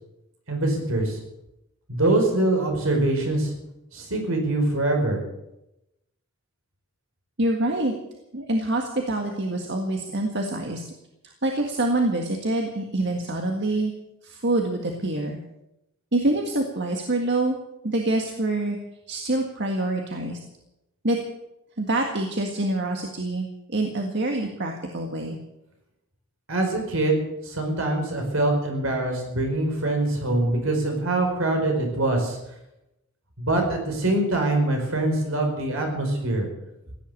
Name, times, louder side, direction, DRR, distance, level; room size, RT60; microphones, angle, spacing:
voice 1, 0.5-1.2 1.9-3.5 3.9-5.2 26.5-32.4 33.4-36.5, right 2 dB, 75° right, 3 dB, 4.9 m, -24 dB
voice 2, 7.4-7.9 8.3-10.8 11.4-13.9 14.2-15.4 16.1-17.6 17.8-18.8 19.1-20.4 21.0-21.2 21.8-25.4, right 2 dB, 55° right, 2 dB, 1.8 m, -26 dB
16.5 x 10.5 x 8.4 m, 0.90 s
head